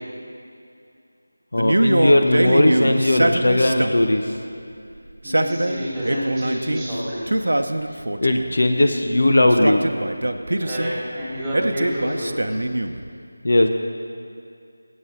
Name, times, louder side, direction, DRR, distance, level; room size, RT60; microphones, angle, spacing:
voice 1, 1.5-4.3 8.2-9.8 13.4-13.7, left 1 dB, 65° left, 4 dB, 0.9 m, -18 dB
Male speech man speaking, 1.6-4.1 5.1-6.8 7.3-8.5 9.4-10.9 11.5-13.0, right 1 dB, 80° right, 0.7 m, -23 dB
voice 2, 5.2-7.3 10.6-12.6, equal, 5° right, -10 dB, 2.9 m, -28 dB
15.0 x 8.3 x 4.8 m, 2.4 s
figure-of-eight pair, 170°, 0 cm